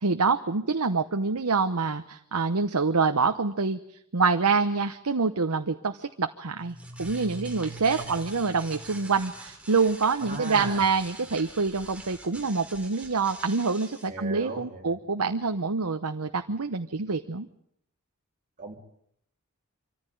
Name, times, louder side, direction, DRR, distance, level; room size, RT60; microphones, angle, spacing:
voice 1, 0.0-3.8 4.1-17.5, right 4 dB, 80° right, 7 dB, 1.0 m, -26 dB
sound 1, 6.5-14.1, right 2 dB, 5° right, 3.1 m, -43 dB
voice 2, 10.3-10.8 14.1-15.0 18.6-18.8, right 3 dB, 35° right, 0 dB, 3.1 m, -36 dB
25.0 x 15.0 x 9.3 m, 0.73 s
head